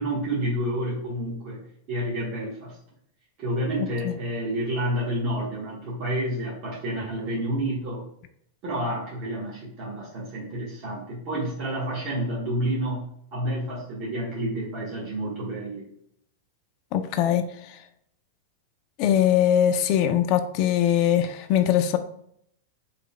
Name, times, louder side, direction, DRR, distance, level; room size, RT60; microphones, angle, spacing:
voice 1, 0.0-1.6 1.9-2.8 3.4-8.0 8.6-15.9, right 1 dB, 45° right, -5 dB, 1.3 m, -29 dB
voice 2, 16.9-17.5 19.0-22.0, left 10 dB, 45° left, 9 dB, 0.5 m, -21 dB
5.0 x 3.5 x 2.2 m, 0.70 s
supercardioid pair, 135°, 0 cm